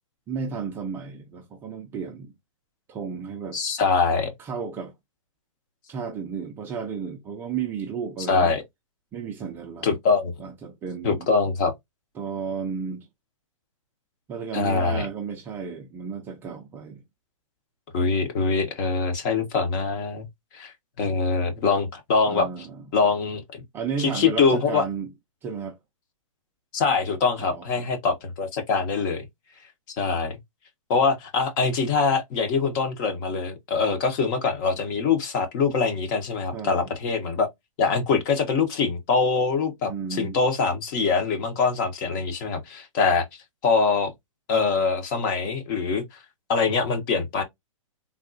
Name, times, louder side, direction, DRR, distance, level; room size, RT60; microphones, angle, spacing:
voice 1, 0.3-2.3 2.9-3.6 4.4-4.9 5.9-8.6 9.1-10.0 10.4-11.3 12.2-13.1 14.3-17.0 22.3-22.8 23.7-25.1 25.4-25.8 27.4-27.7 36.5-36.9 39.9-40.4, right 6 dB, 10° right, 0.3 m, -33 dB
voice 2, 3.5-4.3 8.3-8.6 9.8-10.3 11.0-11.7 14.5-15.1 17.9-20.3 20.5-20.7 21.0-22.5 22.9-23.6 24.0-24.8 26.7-29.3 30.0-30.4 30.9-37.5 37.8-43.3 43.6-44.1 44.5-46.0 46.5-47.4, left 4 dB, 35° left, 0.8 m, -23 dB
3.5 x 2.3 x 2.5 m
hypercardioid pair, 145°, 17 cm